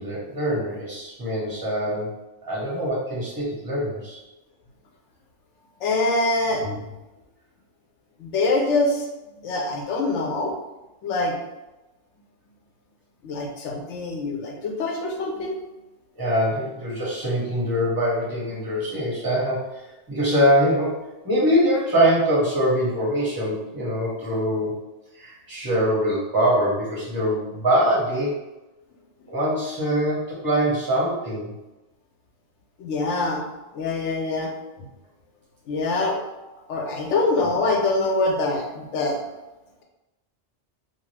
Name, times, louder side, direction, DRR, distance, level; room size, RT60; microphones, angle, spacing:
voice 1, 0.0-2.1 2.4-4.2 16.2-19.8 20.1-24.8 25.1-28.4 29.3-31.5, equal, 20° right, -6 dB, 0.9 m, -23 dB
voice 2, 5.8-6.9 8.2-9.1 9.3-10.5 11.0-11.3 13.2-15.6 32.8-33.4 33.7-34.5 35.7-36.2 36.7-39.2, left 2 dB, 85° left, 1 dB, 0.9 m, -24 dB
2.6 x 2.3 x 3.2 m, 1.0 s
omnidirectional pair, 1.2 m